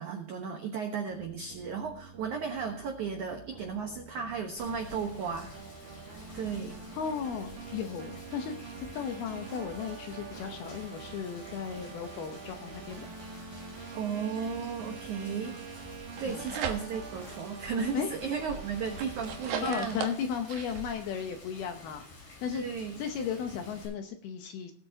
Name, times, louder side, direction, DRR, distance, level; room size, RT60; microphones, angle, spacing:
voice 1, 0.0-5.5 6.1-6.8 13.9-15.8 16.2-20.0 22.5-23.0, right 6 dB, 90° right, 4 dB, 1.7 m, -35 dB
sound 1, 1.1-20.1, right 5 dB, 50° right, 3.1 m, -46 dB
Rain, 4.6-23.9, left 3 dB, 55° left, 7.9 m, -51 dB
voice 2, 6.9-13.1 16.2-16.6 17.9-18.1 19.6-22.6 23.0-24.7, left 7 dB, 75° left, 6 dB, 2.4 m, -35 dB
sound 2, 16.0-17.2 17.6-20.9, right 7 dB, 65° right, 2.5 m, -39 dB
20.0 x 8.7 x 2.8 m, 0.63 s
omnidirectional pair, 5.5 m